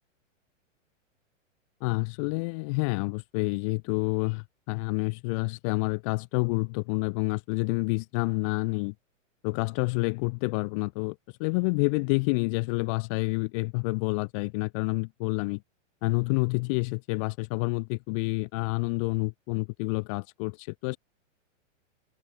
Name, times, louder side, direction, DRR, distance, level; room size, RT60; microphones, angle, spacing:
voice 1, 1.8-8.9 9.4-15.6 16.0-21.0, left 30 dB, 25° left, 0.6 m, -28 dB
open air
hypercardioid pair, 160°, 39 cm